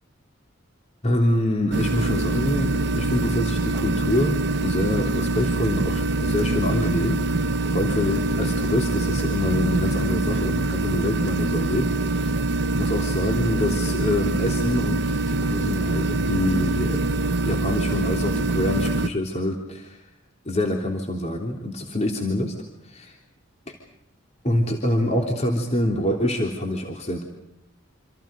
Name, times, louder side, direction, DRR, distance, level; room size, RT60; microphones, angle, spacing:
voice 1, 1.0-17.0 17.5-20.0 20.5-22.6 22.8-23.1 23.7-23.8 24.4-27.2, left 1 dB, 35° left, 1 dB, 3.4 m, -26 dB
sound 1, 1.7-19.1, right 2 dB, 55° right, 0.8 m, -24 dB
28.5 x 27.0 x 5.3 m, 0.87 s
head